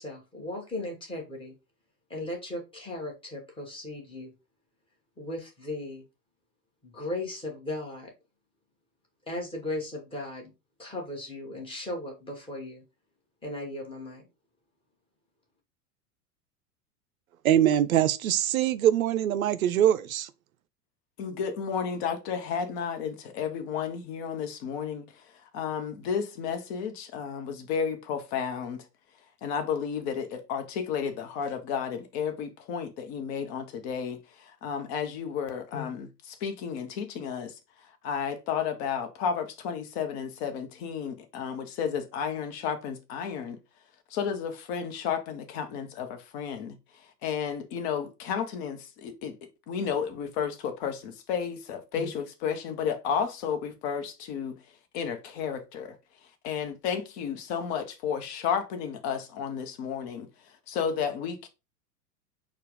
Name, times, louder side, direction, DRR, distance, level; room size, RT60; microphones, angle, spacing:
voice 1, 0.0-1.5 2.1-4.3 5.2-6.0 6.8-8.1 9.3-10.5 10.8-12.8 13.4-14.3, left 1 dB, 10° left, 1.6 m, -37 dB
voice 2, 17.4-20.3, right 11 dB, 60° right, 0.6 m, -23 dB
voice 3, 21.2-28.8 29.4-37.6 38.0-43.6 44.1-54.6 54.9-55.9 56.4-61.5, left 7 dB, 40° left, 1.0 m, -32 dB
4.5 x 2.5 x 4.9 m
figure-of-eight pair, 90°, 48 cm